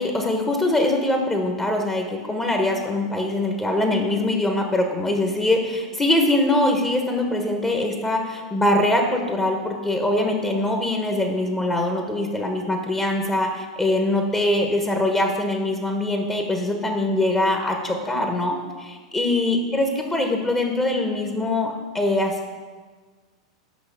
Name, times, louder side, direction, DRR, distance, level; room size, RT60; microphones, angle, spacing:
voice 1, 0.0-22.5, left 1 dB, 15° left, 2 dB, 1.1 m, -23 dB
6.2 x 5.6 x 6.8 m, 1.5 s
hypercardioid pair, 95°, 3 cm